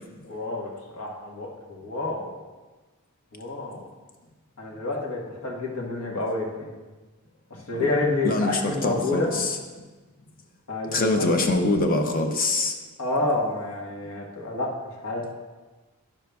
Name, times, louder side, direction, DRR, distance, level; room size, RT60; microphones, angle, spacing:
voice 1, 0.2-2.3 3.3-3.8 4.6-6.7 7.7-9.3 10.7-11.3 13.0-14.7 15.0-15.3, left 2 dB, 85° left, -2 dB, 1.3 m, -29 dB
voice 2, 8.2-9.6 10.9-12.7, left 2 dB, 40° left, 4 dB, 0.6 m, -24 dB
10.5 x 6.4 x 2.3 m, 1.3 s
head